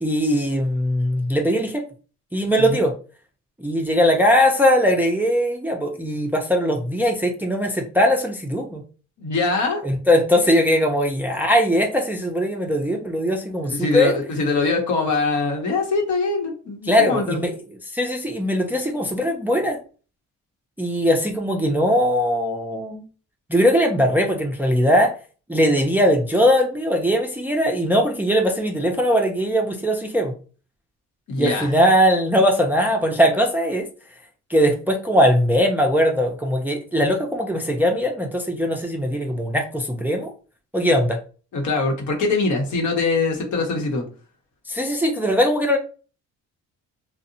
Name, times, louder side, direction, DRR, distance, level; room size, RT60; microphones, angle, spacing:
voice 1, 0.0-1.8 2.3-2.9 3.6-8.8 9.8-14.1 16.9-17.6 17.9-19.8 20.8-23.0 23.5-25.1 25.5-30.3 31.4-33.9 34.5-40.3 40.7-41.2 44.7-45.8, equal, 5° right, 2 dB, 0.4 m, -20 dB
voice 2, 9.2-9.8 13.6-17.4 31.3-31.7 41.5-44.0, left 3 dB, 75° left, 1 dB, 0.9 m, -23 dB
2.6 x 2.0 x 2.6 m, 0.37 s
cardioid pair, 90°, 30 cm